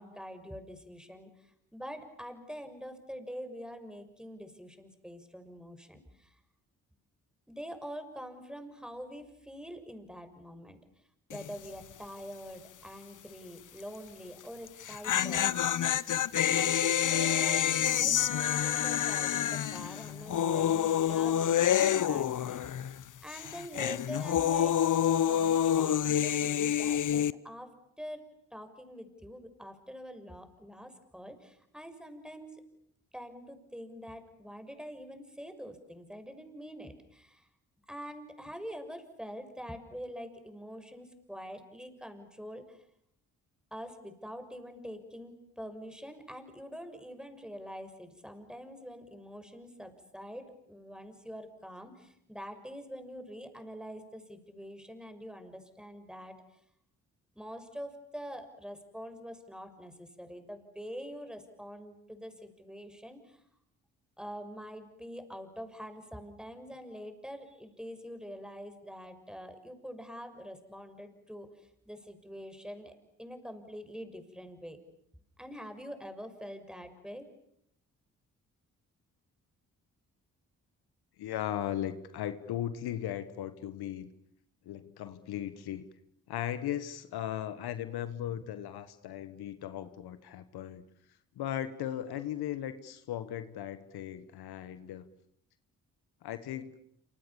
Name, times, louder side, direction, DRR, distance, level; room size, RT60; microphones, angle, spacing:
voice 1, 0.0-6.4 7.5-10.8 11.3-15.8 16.3-22.9 23.2-24.8 25.2-27.7 28.0-28.2 28.5-32.6 33.1-37.5 37.9-42.8 43.7-56.4 57.3-63.4 64.2-71.5 71.9-74.8 75.4-77.3, equal, ahead, 8 dB, 6.4 m, -45 dB
sound 1, 11.3-11.7 11.9-12.0 14.7-23.0 23.3-27.3, left 10 dB, 50° left, 1.0 m, -28 dB
voice 2, 81.2-84.1 84.6-85.8 86.3-90.8 91.4-95.0 96.2-96.7, left 11 dB, 75° left, 12 dB, 1.6 m, -37 dB
27.5 x 27.0 x 7.2 m, 0.73 s
hypercardioid pair, 45°, 38 cm